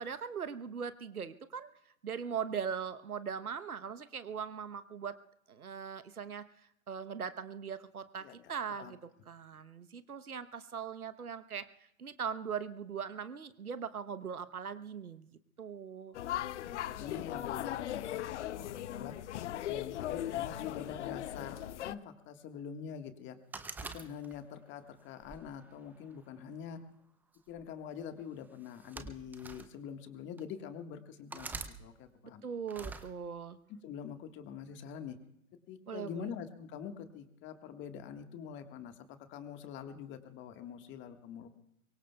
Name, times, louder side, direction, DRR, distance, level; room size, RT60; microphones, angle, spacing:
voice 1, 0.0-1.7 2.0-5.2 5.5-16.2 32.4-33.6 35.9-36.3, right 7 dB, 85° right, 12 dB, 1.0 m, -40 dB
sound 1, 16.1-22.0, left 12 dB, 55° left, 0.7 m, -38 dB
voice 2, 16.7-19.1 19.6-23.4 23.8-26.8 27.5-31.5 31.8-32.4 33.8-35.2 35.7-41.5, left 8 dB, 25° left, 8 dB, 1.5 m, -45 dB
sound 2, 23.5-24.6 25.2-26.4 27.3-27.6 28.6-29.7 30.4-30.5 31.3-31.7 32.7-33.1, right 3 dB, 5° right, 0.5 m, -44 dB
24.0 x 23.0 x 2.3 m, 0.81 s
figure-of-eight pair, 115°, 43 cm